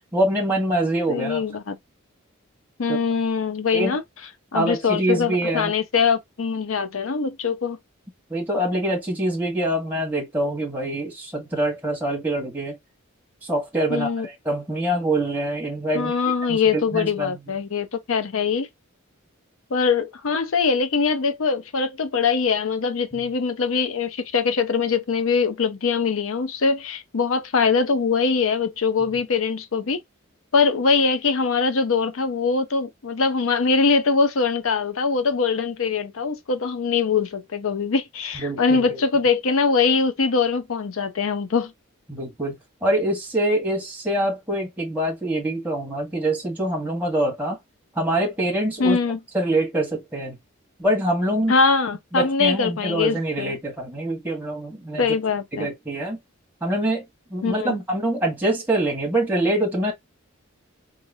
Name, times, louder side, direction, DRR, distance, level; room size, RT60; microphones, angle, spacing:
voice 1, 0.1-1.4 2.9-3.0 3.7-4.0 4.5-5.7 8.3-12.8 13.4-16.1 16.5-17.4 23.1-23.3 29.0-29.2 38.3-39.0 42.1-42.5 42.8-47.6 47.9-49.0 49.3-50.4 50.8-51.5 52.1-55.1 55.5-56.2 56.6-59.9, right 1 dB, 10° right, 1.4 m, -25 dB
voice 2, 1.1-1.8 2.8-4.0 4.5-7.8 13.9-14.3 15.9-18.7 19.7-30.0 30.5-41.7 48.8-49.2 51.5-53.6 55.0-55.7 57.4-57.8, left 5 dB, 70° left, 0.6 m, -22 dB
3.7 x 2.8 x 2.7 m
head